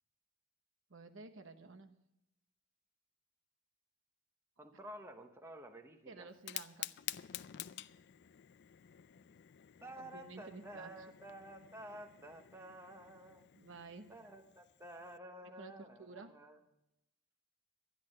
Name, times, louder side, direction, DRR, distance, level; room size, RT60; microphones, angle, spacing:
voice 1, 0.9-2.0 6.1-7.0 7.3-7.5 10.0-10.9 13.5-14.1 15.4-16.4, right 3 dB, 60° right, 7 dB, 1.0 m, -52 dB
voice 2, 4.6-6.3 9.8-13.5 14.1-16.6, right 1 dB, 10° right, 5 dB, 0.9 m, -51 dB
Fire, 6.3-15.2, left 13 dB, 50° left, 0.4 m, -50 dB
13.0 x 10.5 x 6.4 m, 0.87 s
head